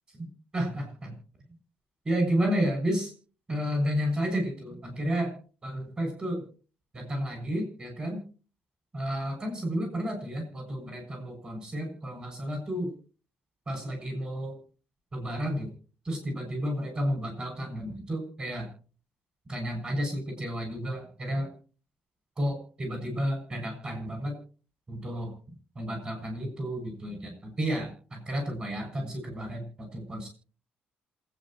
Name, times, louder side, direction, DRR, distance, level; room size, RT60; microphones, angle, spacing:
voice 1, 0.5-1.1 2.1-3.1 3.5-5.3 5.6-6.4 6.9-8.2 8.9-12.9 13.7-14.6 15.1-15.7 16.1-18.7 19.5-21.5 22.4-24.4 24.9-25.3 25.8-29.7 29.9-30.3, equal, 25° right, 3 dB, 7.0 m, -31 dB
27.0 x 9.2 x 3.0 m, 0.38 s
cardioid pair, 160°, 4 cm